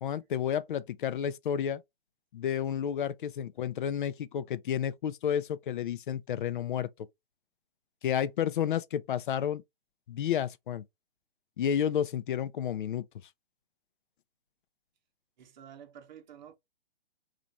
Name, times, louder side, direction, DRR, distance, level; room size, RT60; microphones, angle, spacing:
voice 1, 0.0-1.8 2.3-6.9 8.0-9.6 10.1-10.8 11.6-13.1, left 9 dB, 55° left, 0.5 m, -31 dB
voice 2, 15.4-16.6, right 9 dB, 45° right, 0.9 m, -50 dB
3.0 x 2.5 x 3.9 m
figure-of-eight pair, 125°, 30 cm